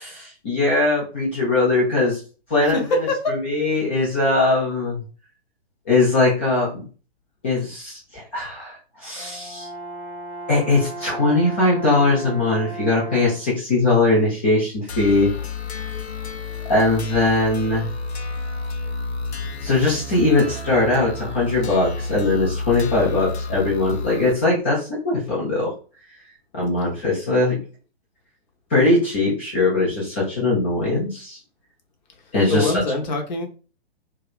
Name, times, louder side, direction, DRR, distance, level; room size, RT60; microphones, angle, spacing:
voice 1, 0.0-2.2 2.5-2.8 3.3-5.0 5.9-6.8 7.4-9.7 10.5-15.3 16.7-17.9 19.6-25.7 26.5-27.6 28.7-31.4 32.3-32.7, left 2 dB, 15° left, -6 dB, 0.3 m, -20 dB
Brass instrument, 9.2-13.6, right 1 dB, 20° right, 0.6 m, -35 dB
sound 1, 14.9-24.3, left 3 dB, 85° left, 0.5 m, -30 dB
voice 2, 32.5-33.4, left 3 dB, 45° left, 3 dB, 0.7 m, -24 dB
2.7 x 2.1 x 2.4 m, 0.36 s
figure-of-eight pair, 120°, 32 cm